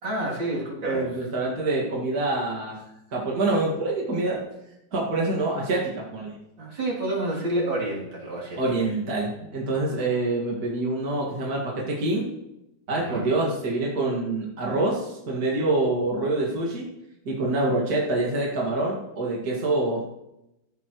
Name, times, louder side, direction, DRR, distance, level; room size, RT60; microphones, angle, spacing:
voice 1, 0.0-1.3 6.6-8.6 12.9-13.3, right 1 dB, 70° right, -4 dB, 3.8 m, -29 dB
voice 2, 0.8-2.8 3.1-4.4 4.9-6.4 8.6-12.3 12.9-16.9 17.3-20.0, right 2 dB, 50° right, -4 dB, 2.5 m, -26 dB
14.5 x 11.5 x 3.1 m, 0.87 s
omnidirectional pair, 2.1 m